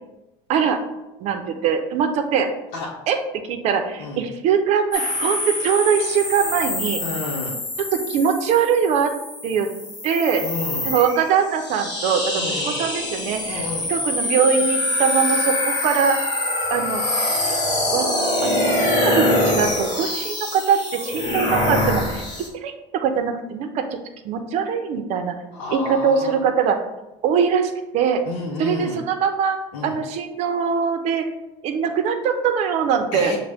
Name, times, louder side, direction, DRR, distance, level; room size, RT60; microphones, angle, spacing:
voice 1, 0.5-0.8 1.2-2.5 3.1-3.2 3.5-7.0 7.9-9.1 9.4-9.7 10.0-10.4 10.9-13.6 13.9-16.2 16.7-17.0 17.5-17.6 17.9-18.1 18.4-18.7 19.0-22.2 22.6-23.8 24.2-25.4 25.7-26.8 27.2-28.2 28.6-29.6 29.8-31.3 31.6-33.3, right 7 dB, 55° right, 6 dB, 0.6 m, -22 dB
sound 1, 4.9-22.5, left 1 dB, 35° left, 1.1 m, -24 dB
voice 2, 7.0-7.6 10.4-10.9 12.4-12.8 13.5-13.9 25.5-26.4 28.2-29.0 29.7-30.0 33.1-33.4, left 3 dB, 90° left, -3 dB, 0.8 m, -30 dB
6.4 x 2.2 x 3.4 m, 0.98 s
cardioid pair, 135°, 13 cm